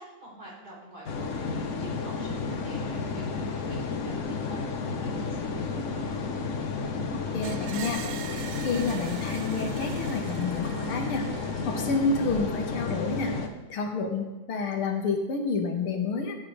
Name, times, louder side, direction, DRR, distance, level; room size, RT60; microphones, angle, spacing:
voice 1, 0.0-6.1, right 1 dB, 20° right, -7 dB, 3.9 m, -47 dB
sound 1, 1.0-13.5, left 4 dB, 55° left, 0.9 m, -32 dB
voice 2, 7.3-11.3 11.6-13.4 13.7-16.4, left 4 dB, 85° left, 4 dB, 2.1 m, -29 dB
Screech, 7.4-12.4, right 9 dB, 80° right, 1.5 m, -43 dB
sound 2, 8.2-13.2, right 2 dB, 40° right, 3.0 m, -46 dB
14.5 x 8.7 x 3.2 m, 1.1 s
omnidirectional pair, 2.3 m